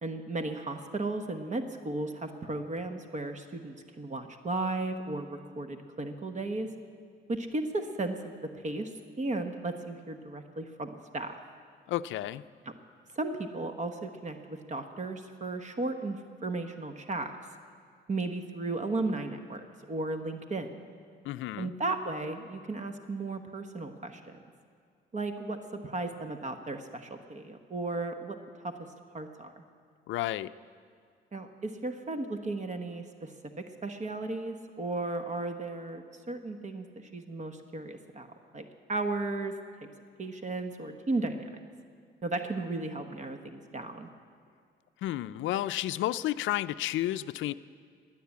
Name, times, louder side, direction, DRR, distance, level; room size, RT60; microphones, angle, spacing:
voice 1, 0.0-6.7 7.3-8.9 9.2-11.4 13.1-17.3 18.1-20.8 21.6-24.4 25.1-25.6 25.8-28.4 28.6-28.7 29.1-29.5 31.3-33.3 33.8-38.3 38.5-39.5 40.2-41.6 42.2-44.1, right 2 dB, 35° right, 7 dB, 1.1 m, -35 dB
voice 2, 11.9-12.4 21.2-21.7 30.1-30.5 45.0-47.5, left 14 dB, 75° left, 13 dB, 0.4 m, -31 dB
16.0 x 10.5 x 8.4 m, 2.2 s
cardioid pair, 90°, 20 cm